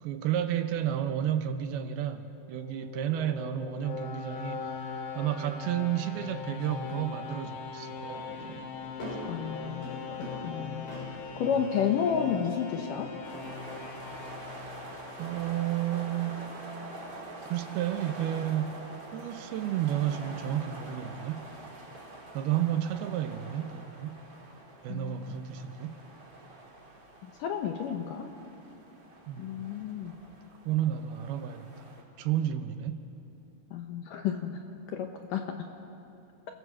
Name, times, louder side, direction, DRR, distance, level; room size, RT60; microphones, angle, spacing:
voice 1, 0.0-8.6 15.2-16.5 17.5-18.8 19.1-21.5 22.3-24.2 24.8-26.0 29.3-29.7 30.7-31.9 32.2-33.0, right 11 dB, 75° right, 9 dB, 2.6 m, -32 dB
sound 1, 2.3-15.4, left 6 dB, 90° left, 4.2 m, -41 dB
sound 2, 6.1-6.9 7.9-11.6, equal, 55° left, 8.4 m, -43 dB
voice 2, 9.2-10.0 10.4-11.0 11.4-13.1 24.9-25.2 27.2-28.3 29.4-30.1 33.7-34.6 34.9-35.6, left 7 dB, 70° left, 4 dB, 2.1 m, -31 dB
sound 3, 13.2-32.0, right 2 dB, 25° right, 3.2 m, -46 dB
29.5 x 16.5 x 7.3 m, 2.7 s
omnidirectional pair, 4.8 m